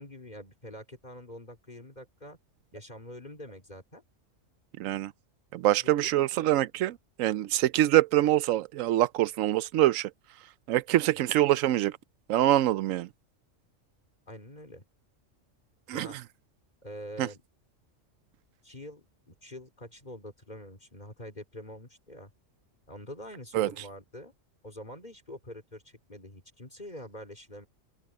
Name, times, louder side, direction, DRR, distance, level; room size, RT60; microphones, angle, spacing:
voice 1, 0.0-2.4 2.7-4.0 5.8-6.3 14.3-14.8 15.9-16.2 16.8-17.4 18.6-22.3 22.9-24.3 24.6-27.7, left 1 dB, 35° left, 3.7 m, -45 dB
voice 2, 4.8-5.1 5.5-10.1 10.7-12.0 12.3-13.1 15.9-16.1 17.2-17.3 23.5-23.7, right 14 dB, 85° right, 1.0 m, -25 dB
open air
omnidirectional pair, 1.3 m